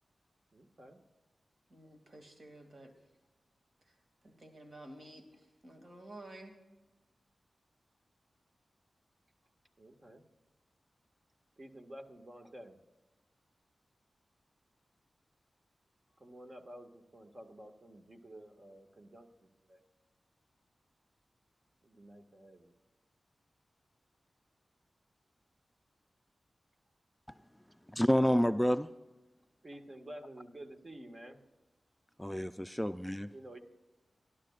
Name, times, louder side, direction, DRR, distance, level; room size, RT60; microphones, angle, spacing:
voice 1, 0.5-1.0 9.8-10.3 11.6-12.8 16.2-19.8 21.8-22.7 29.6-31.4 33.3-33.6, right 1 dB, 45° right, 4 dB, 1.9 m, -51 dB
voice 2, 1.7-2.9 3.8-4.0 4.2-6.6, right 1 dB, 60° right, 4 dB, 2.5 m, -52 dB
voice 3, 27.9-28.9 32.2-33.3, equal, 5° left, 10 dB, 0.5 m, -29 dB
27.0 x 12.0 x 2.5 m, 1.1 s
cardioid pair, 40°, 0 cm